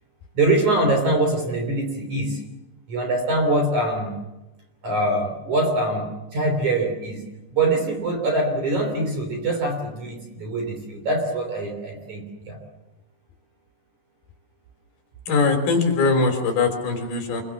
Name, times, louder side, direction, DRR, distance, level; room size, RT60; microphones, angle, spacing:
voice 1, 0.3-2.5 2.9-4.2 4.8-7.2 7.5-12.6, right 2 dB, 40° right, 4 dB, 4.3 m, -23 dB
voice 2, 15.3-17.4, left 4 dB, 55° left, 4 dB, 5.3 m, -21 dB
26.5 x 24.0 x 7.2 m, 1.0 s
omnidirectional pair, 5.7 m